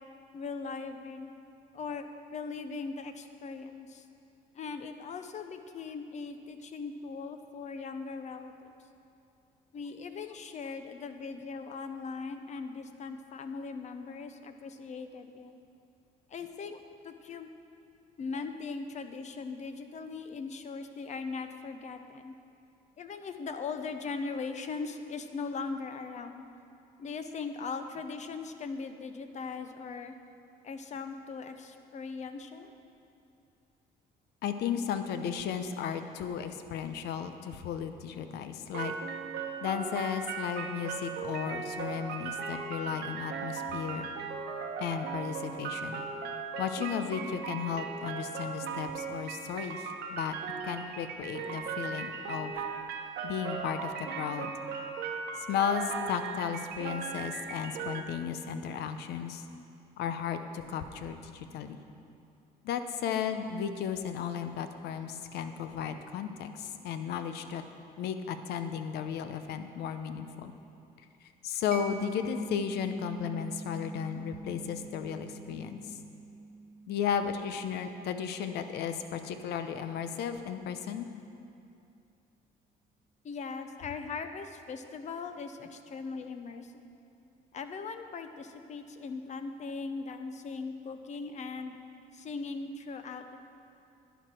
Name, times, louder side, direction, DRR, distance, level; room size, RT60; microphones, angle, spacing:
voice 1, 0.3-1.3 1.7-2.1 2.3-4.1 4.5-8.7 9.7-15.6 16.3-17.5 18.2-22.3 23.0-26.4 27.0-30.1 30.6-32.7 83.2-86.8 87.5-91.8 92.1-93.4, left 4 dB, 45° left, 8 dB, 0.8 m, -39 dB
voice 2, 34.4-38.9 39.6-44.1 44.8-46.0 46.6-50.4 50.6-52.6 53.2-54.5 55.3-59.4 60.0-61.8 62.6-67.6 68.0-70.5 71.4-76.0 76.9-81.1, left 8 dB, 75° left, 9 dB, 0.7 m, -34 dB
sound 1, 38.7-58.0, right 5 dB, 75° right, 1.0 m, -38 dB
Mallet percussion, 71.7-79.1, right 3 dB, 55° right, 0.8 m, -44 dB
11.0 x 10.5 x 4.5 m, 2.6 s
cardioid pair, 110°, 17 cm